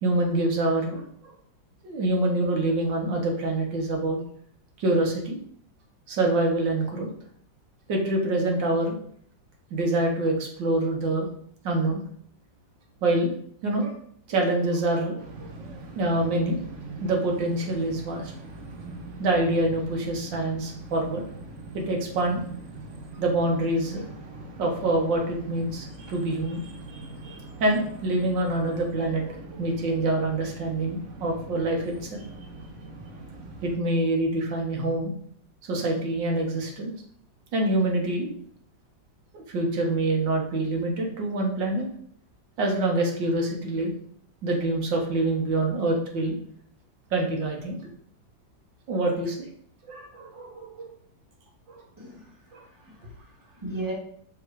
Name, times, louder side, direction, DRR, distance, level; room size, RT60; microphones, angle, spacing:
voice 1, 0.0-1.3 1.8-4.2 4.8-5.4 6.1-7.1 7.9-9.0 9.7-11.3 11.6-12.0 13.0-13.3 13.6-13.9 14.3-15.5 16.0-16.6 17.0-18.3 19.2-21.3 21.7-22.4 23.2-24.0 24.6-32.2 33.6-35.1 35.6-36.9 37.5-38.3 39.3-41.9 42.6-43.9 44.4-46.4 47.1-47.8 48.9-49.4 49.9-50.9 51.7-51.8 52.5-52.6, right 2 dB, 75° right, 1 dB, 1.9 m, -26 dB
sound 1, 15.2-33.8, right 2 dB, 50° right, 1.0 m, -42 dB
voice 2, 52.0-53.9, right 2 dB, 10° right, -4 dB, 1.8 m, -37 dB
5.6 x 3.7 x 4.7 m, 0.62 s
omnidirectional pair, 2.0 m